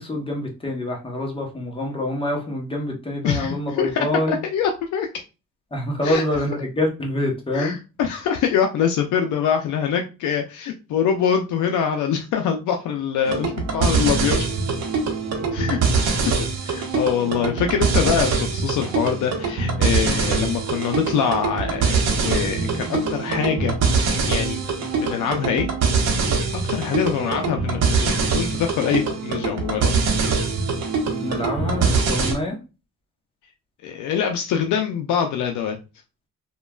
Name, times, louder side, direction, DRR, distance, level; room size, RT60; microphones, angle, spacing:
voice 1, 0.0-4.4 5.7-7.8 15.3-15.6 20.0-20.2 31.0-32.6, left 1 dB, 20° left, 0 dB, 0.8 m, -26 dB
voice 2, 3.2-5.1 6.0-6.2 7.5-14.5 15.5-16.3 16.6-24.6 25.0-25.7 26.5-29.9 33.8-35.8, left 7 dB, 75° left, 4 dB, 0.4 m, -24 dB
sound 1, 13.3-32.3, right 4 dB, 60° right, 0.8 m, -23 dB
3.0 x 2.2 x 2.2 m, 0.30 s
cardioid pair, 90°, 30 cm